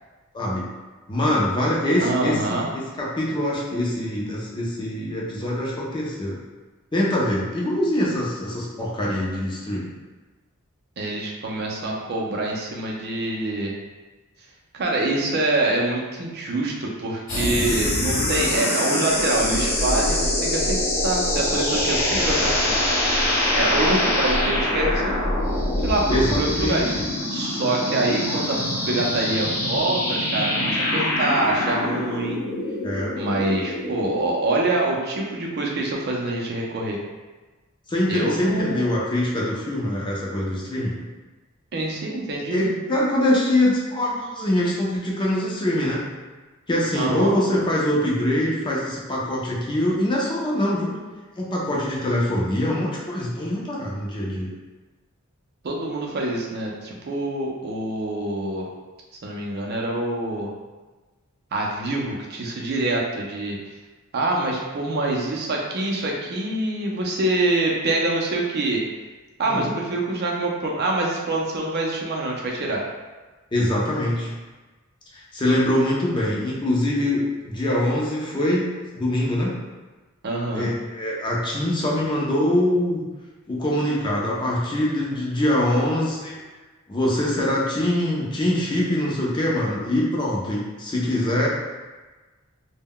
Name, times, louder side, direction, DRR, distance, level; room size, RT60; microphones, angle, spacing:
voice 1, 0.3-0.6 1.1-6.4 6.9-9.9 26.1-27.0 32.8-33.1 37.9-40.9 42.5-46.0 46.7-51.0 51.4-54.5 69.4-69.6 73.5-74.3 75.1-78.7 78.9-79.5 80.5-83.1 83.5-86.4 86.9-91.5, left 1 dB, 20° left, -4 dB, 0.5 m, -23 dB
voice 2, 2.0-2.7 11.0-13.7 14.7-22.7 23.5-25.1 25.8-26.8 27.3-28.6 28.9-32.4 33.1-37.0 38.1-38.9 41.7-42.6 47.0-47.4 55.6-58.7 59.2-60.5 61.5-63.6 64.1-68.8 69.4-72.8 80.2-80.7, right 2 dB, 50° right, -1 dB, 0.4 m, -25 dB
sound 1, 17.3-34.1, left 1 dB, 60° left, 0.7 m, -24 dB
2.1 x 2.1 x 3.6 m, 1.2 s
head